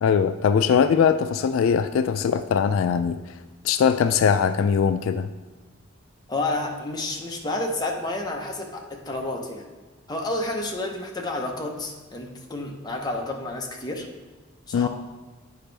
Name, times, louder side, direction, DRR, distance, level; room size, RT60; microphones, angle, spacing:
voice 1, 0.0-3.2 3.6-5.3 14.7-14.9, left 7 dB, 75° left, 11 dB, 0.3 m, -21 dB
voice 2, 6.3-9.7 10.1-14.1 14.7-14.9, left 2 dB, 20° left, 1 dB, 0.8 m, -30 dB
8.8 x 5.1 x 3.3 m, 1.3 s
head